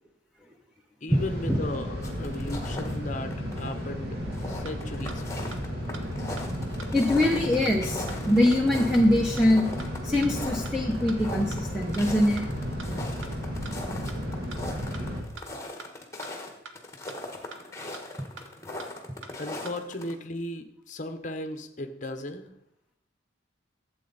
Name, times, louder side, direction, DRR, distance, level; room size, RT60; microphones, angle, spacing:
voice 1, 1.0-4.2 4.5-5.6 19.4-22.5, left 1 dB, 40° left, 7 dB, 0.9 m, -36 dB
sound 1, 1.1-15.2, equal, 50° right, 3.0 m, -33 dB
sound 2, 2.0-3.0 3.3-3.9 4.2-20.1, left 2 dB, 15° left, 1.3 m, -39 dB
sound 3, 4.7-4.8 5.1-5.2 5.5-5.6 5.9-6.0 6.4-6.5 6.8-6.9 7.2-7.3 7.7-7.8 8.1-8.2 8.5-8.6 8.9-9.0 9.4-9.5 9.8-9.9 10.2-10.3 10.7-10.8 11.1-11.2 11.5-11.6 11.9-12.0 12.4-12.5 12.8-12.9 13.2-13.3 13.7-13.8 14.1-14.2 14.5-14.6 14.9-15.0 15.4-15.5 15.8-15.9 16.2-16.3 16.7-16.8 17.1-17.2 17.5-17.6 17.9-18.0 18.4-18.5 18.8-18.9 19.2-19.3 19.7-19.8, right 4 dB, 75° right, 1.1 m, -43 dB
voice 2, 6.9-9.7 10.0-12.4, left 1 dB, 5° right, -1 dB, 0.8 m, -23 dB
12.0 x 7.9 x 4.0 m, 0.76 s
head